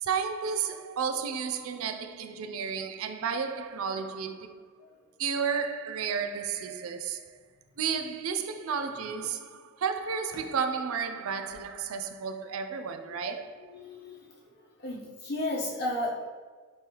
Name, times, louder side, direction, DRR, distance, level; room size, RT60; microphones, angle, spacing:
voice 1, 0.0-4.6 5.2-7.4 7.8-13.7, right 6 dB, 85° right, 0.4 m, -32 dB
voice 2, 13.7-14.5 14.8-16.3, left 1 dB, 50° left, 0.9 m, -34 dB
5.3 x 3.2 x 2.9 m
head